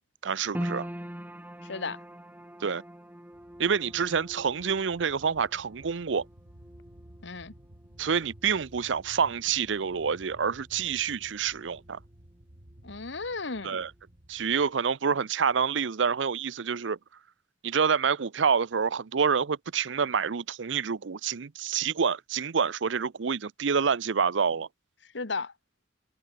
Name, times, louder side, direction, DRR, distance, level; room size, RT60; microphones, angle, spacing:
voice 1, 0.2-0.9 2.6-2.8 3.6-6.2 8.0-12.0 13.6-13.9 14.3-17.0 17.6-24.7, right 6 dB, 75° right, 0.6 m, -27 dB
sound 1, 0.5-13.0 13.2-14.2 14.6-14.7, equal, 10° right, 3.4 m, -44 dB
voice 2, 1.6-2.0 7.2-7.5 12.8-13.8 25.1-25.5, left 4 dB, 70° left, 1.6 m, -34 dB
sound 2, 3.3-14.7, right 1 dB, 60° right, 2.7 m, -54 dB
head